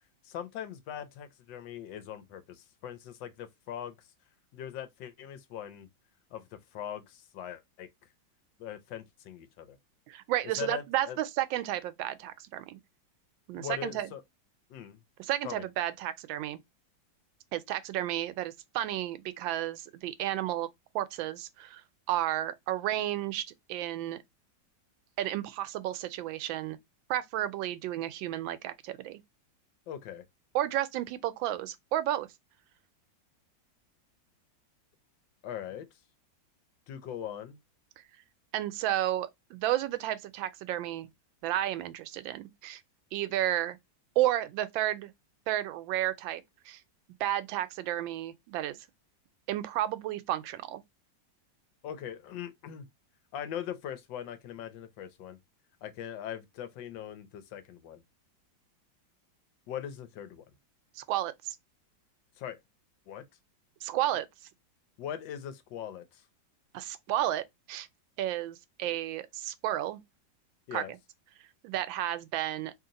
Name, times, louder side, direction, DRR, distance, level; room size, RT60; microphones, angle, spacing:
voice 1, 0.2-4.1 4.5-5.9 6.3-7.9 8.6-9.8 10.6-11.2 13.5-14.2 14.7-15.0 15.4-15.7 29.9-30.2 35.4-35.9 36.9-37.6 51.8-52.9 53.3-55.4 55.8-58.0 59.7-60.4 62.4-62.6 63.1-63.2 65.0-66.2 70.7-70.9, left 10 dB, 75° left, 1.4 m, -41 dB
voice 2, 10.1-12.8 13.5-14.1 15.2-16.6 17.5-20.7 20.9-21.8 22.1-23.4 23.7-24.2 25.2-26.8 27.1-29.2 30.5-32.3 38.5-41.1 41.4-42.8 43.1-43.8 44.2-45.1 45.5-46.8 47.2-48.8 49.5-50.8 61.0-61.6 63.8-64.3 66.7-67.9 68.2-70.0 70.7-70.8 71.6-72.7, right 13 dB, 85° right, 1.3 m, -32 dB
3.1 x 2.9 x 3.8 m
omnidirectional pair, 2.0 m